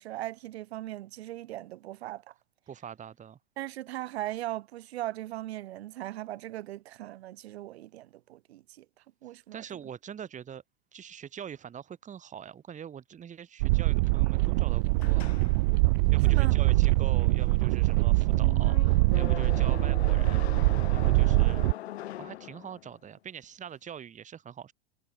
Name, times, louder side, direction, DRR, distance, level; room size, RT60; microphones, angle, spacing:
voice 1, 0.0-2.3 3.6-8.8 9.2-9.6 16.2-16.5 21.4-21.5, right 14 dB, 75° right, 4.8 m, -39 dB
voice 2, 2.7-3.4 9.5-10.6 10.9-15.4 16.1-20.5 20.9-21.6 22.2-24.7, right 8 dB, 20° right, 3.9 m, -43 dB
sound 1, 13.6-21.7, right 25 dB, 55° right, 0.8 m, -23 dB
sound 2, 15.0-23.1, left 13 dB, 75° left, 6.7 m, -42 dB
hypercardioid pair, 125°, 32 cm